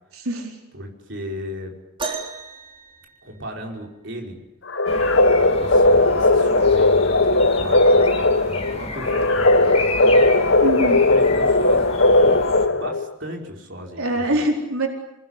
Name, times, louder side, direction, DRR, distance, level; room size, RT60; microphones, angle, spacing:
voice 1, 0.2-0.5 10.6-11.0 14.0-14.9, right 1 dB, 90° right, 2 dB, 4.4 m, -23 dB
voice 2, 0.7-1.7 3.2-4.4 5.3-10.3 11.0-12.4 12.7-14.4, equal, 60° right, 1 dB, 5.2 m, -36 dB
sound 1, 2.0-3.9 5.6-5.7 6.4-6.7 7.6-7.7, right 4 dB, 25° right, 3.3 m, -34 dB
sound 2, 4.7-13.1, left 2 dB, 65° left, 1.2 m, -17 dB
sound 3, 4.9-12.7, left 2 dB, 30° left, 3.1 m, -32 dB
28.5 x 20.0 x 9.8 m, 0.92 s
head